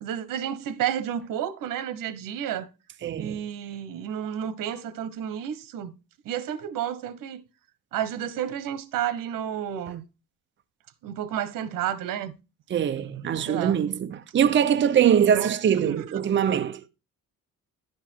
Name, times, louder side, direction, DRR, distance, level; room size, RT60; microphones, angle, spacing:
voice 1, 0.0-2.7 3.2-5.9 6.2-7.4 7.9-10.0 11.0-12.3 13.5-13.8 15.3-15.5 15.8-16.0, right 10 dB, 80° right, 1.3 m, -31 dB
voice 2, 3.0-3.4 12.7-16.9, right 9 dB, 35° right, 0.7 m, -23 dB
11.0 x 5.3 x 4.5 m
cardioid pair, 130°, 32 cm